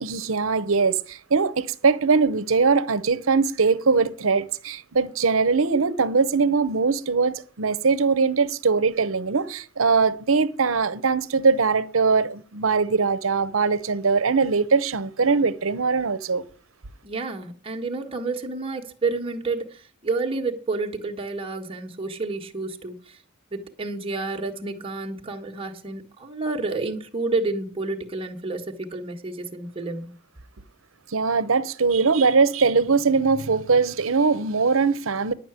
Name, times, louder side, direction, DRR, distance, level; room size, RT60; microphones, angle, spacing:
voice 1, 0.0-16.4 31.1-35.3, right 4 dB, 80° right, 0.8 m, -21 dB
voice 2, 17.0-23.2 23.5-30.2, right 3 dB, 25° right, 1.4 m, -30 dB
11.0 x 5.9 x 8.9 m
head